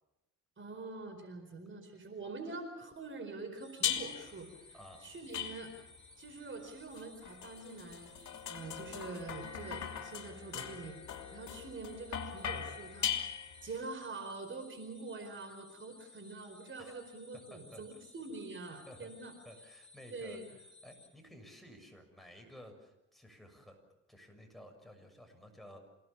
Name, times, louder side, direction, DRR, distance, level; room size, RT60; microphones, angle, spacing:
voice 1, 0.6-5.7 6.2-8.2 8.5-11.0 11.3-19.3 20.1-20.4, right 3 dB, 40° right, 7 dB, 4.7 m, -45 dB
sound 1, 3.6-21.1, left 2 dB, 20° left, 6.7 m, -59 dB
sound 2, 3.8-4.4 5.3-6.0 7.0-13.8, left 9 dB, 70° left, 2.9 m, -39 dB
voice 2, 4.7-5.1 16.8-17.0 17.5-18.0 18.9-19.1 19.4-23.8 24.1-25.8, equal, ahead, 5 dB, 6.9 m, -54 dB
28.5 x 18.0 x 7.3 m, 0.92 s
cardioid pair, 90°, 30 cm